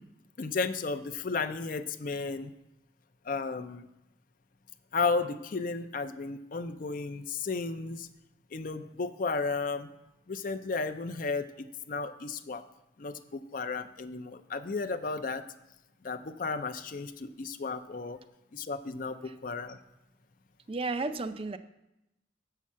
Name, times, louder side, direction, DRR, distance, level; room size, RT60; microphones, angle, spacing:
voice 1, 0.4-2.5 3.3-3.9 4.9-8.1 8.5-9.9 10.3-12.6 13.0-15.4 16.0-18.2 18.5-19.8, left 4 dB, 45° left, 8 dB, 0.5 m, -33 dB
voice 2, 20.7-21.6, right 3 dB, 30° right, 11 dB, 0.4 m, -33 dB
7.4 x 5.7 x 7.3 m, 0.90 s
head